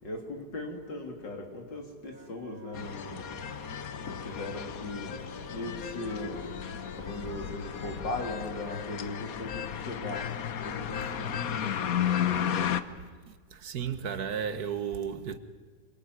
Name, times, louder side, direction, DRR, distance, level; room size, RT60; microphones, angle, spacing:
voice 1, 0.0-3.3 4.0-5.1 5.5-6.5 7.0-10.2 10.6-12.5 12.9-13.0, left 2 dB, 85° left, 3.8 m, -39 dB
Wind instrument woodwind instrument, 2.0-12.3, right 1 dB, 35° right, 2.5 m, -50 dB
sound 1, 2.7-12.8, left 9 dB, 60° left, 1.3 m, -34 dB
voice 2, 13.5-15.4, right 7 dB, 60° right, 1.6 m, -33 dB
26.0 x 22.0 x 9.4 m
omnidirectional pair, 1.9 m